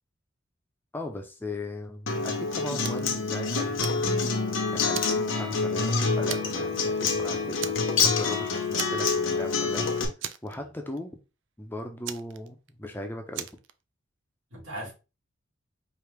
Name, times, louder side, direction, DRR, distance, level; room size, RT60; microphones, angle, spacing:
voice 1, 0.9-4.2 4.7-7.7 8.0-9.9 10.4-11.2 11.6-13.5 14.9-15.0, left 1 dB, 10° left, 0.6 m, -38 dB
Acoustic guitar, 2.1-10.0, left 4 dB, 70° left, 0.9 m, -27 dB
Fire, 2.8-3.1 3.5-4.5 4.9-5.9 6.3-6.7 7.0-7.1 7.6-8.3 8.8-9.3 9.6-9.7 10.2-11.0 12.0-12.9 13.3-13.7, right 10 dB, 65° right, 0.4 m, -38 dB
voice 2, 6.9-7.5 10.5-10.7 14.5-14.9, right 1 dB, 80° right, 2.4 m, -41 dB
5.0 x 2.7 x 3.2 m
head